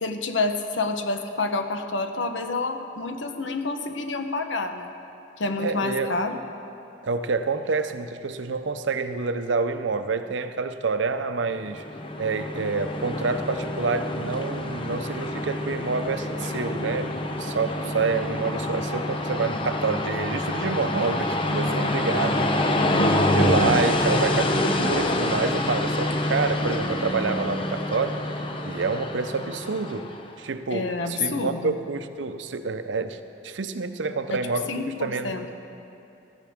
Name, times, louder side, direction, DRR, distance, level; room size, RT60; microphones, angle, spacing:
voice 1, 0.0-4.9 5.4-6.4 22.9-23.3 30.7-31.8 34.3-34.4 34.7-35.6, left 3 dB, 90° left, 6 dB, 1.0 m, -28 dB
voice 2, 5.6-6.2 7.0-11.8 12.2-22.4 22.9-23.0 23.3-28.2 28.6-30.1 30.4-33.2 33.4-34.7 35.0-35.3, right 4 dB, 85° right, 9 dB, 0.6 m, -28 dB
Train, 11.6-30.3, left 1 dB, 30° left, 0.7 m, -26 dB
16.0 x 13.5 x 3.6 m, 2.7 s
head